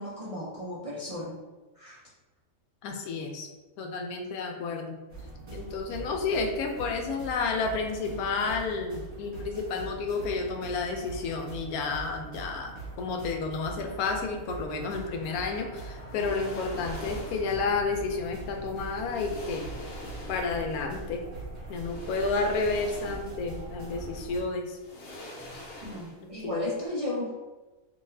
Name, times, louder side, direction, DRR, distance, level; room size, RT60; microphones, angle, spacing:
voice 1, 0.0-1.4 1.8-2.0 25.8-27.4, left 1 dB, 50° right, -7 dB, 0.4 m, -34 dB
voice 2, 2.8-3.5 3.8-5.0 5.5-19.7 20.3-21.2 21.7-24.8 26.4-26.6, left 4 dB, 80° left, 3 dB, 1.1 m, -31 dB
sound 1, 5.1-24.4, right 2 dB, 25° right, 1.3 m, -42 dB
sound 2, 16.0-17.6 18.6-18.7 19.1-20.7 21.8-23.5 23.8-23.9 24.7-26.4 26.6-26.8, left 1 dB, 55° left, 1.0 m, -44 dB
3.8 x 2.8 x 2.6 m, 1.2 s
omnidirectional pair, 1.5 m